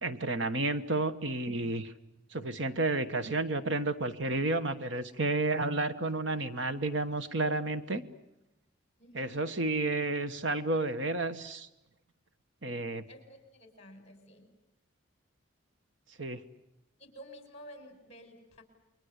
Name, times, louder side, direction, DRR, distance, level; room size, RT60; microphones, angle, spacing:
voice 1, 0.0-1.9 2.3-8.0 9.1-11.7 12.6-13.1 16.2-16.4, right 2 dB, 65° right, 10 dB, 1.3 m, -31 dB
voice 2, 9.0-9.4 13.1-14.5 17.0-18.6, equal, 30° left, 6 dB, 5.6 m, -51 dB
29.0 x 23.5 x 8.2 m, 0.90 s
head